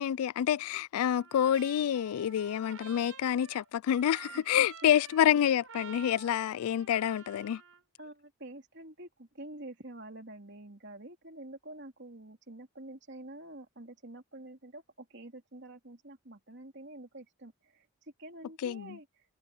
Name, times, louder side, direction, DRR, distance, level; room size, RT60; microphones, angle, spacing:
voice 1, 0.0-7.6 18.6-19.0, left 10 dB, 80° left, 0.3 m, -28 dB
Trumpet, 1.1-7.8, right 6 dB, 70° right, 5.9 m, -50 dB
voice 2, 4.3-4.9 8.0-17.8 18.2-19.0, right 1 dB, 50° right, 3.2 m, -47 dB
head